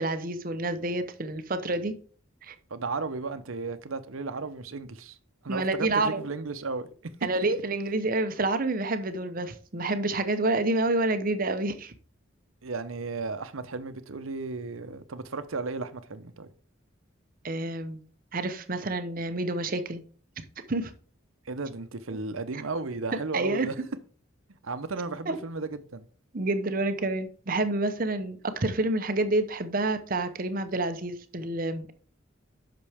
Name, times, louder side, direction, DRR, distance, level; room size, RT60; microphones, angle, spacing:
voice 1, 0.0-1.9 2.4-2.5 5.5-6.2 7.2-11.9 17.4-18.0 18.3-20.0 20.7-20.9 22.5-22.6 23.3-23.7 25.3-25.4 26.3-31.9, right 2 dB, 45° right, 0.8 m, -28 dB
voice 2, 2.7-5.2 5.4-6.9 7.3-7.5 12.6-16.5 21.5-23.8 24.6-26.1, right 3 dB, 80° right, 0.8 m, -34 dB
8.4 x 6.1 x 3.5 m
head